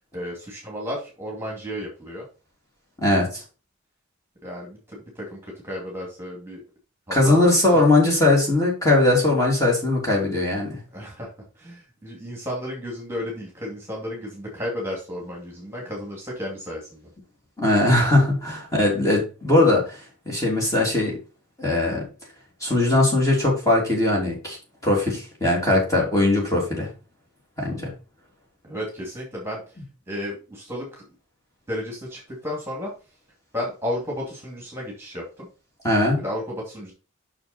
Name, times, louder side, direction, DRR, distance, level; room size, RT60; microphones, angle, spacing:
voice 1, 0.1-2.3 4.4-6.6 7.1-7.9 10.9-17.1 28.6-29.6 30.1-31.0 31.7-32.9 33.5-35.5 36.2-36.9, left 1 dB, 10° right, -2 dB, 2.5 m, -33 dB
voice 2, 3.0-3.4 7.1-10.8 17.6-20.0 20.2-21.2 21.6-22.0 22.6-24.6 24.8-26.9 27.6-27.9 35.8-36.2, left 2 dB, 15° left, -2 dB, 2.9 m, -20 dB
6.8 x 6.1 x 4.2 m, 0.32 s
head